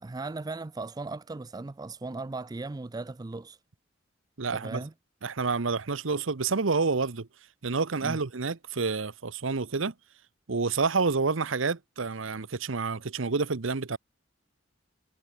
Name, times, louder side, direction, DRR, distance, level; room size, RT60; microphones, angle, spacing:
voice 1, 0.0-3.6 4.5-4.9 8.0-8.2, right 3 dB, 20° right, 0.4 m, -37 dB
voice 2, 4.4-4.8 5.2-7.3 7.6-9.9 10.5-14.0, right 4 dB, 80° right, 0.9 m, -28 dB
head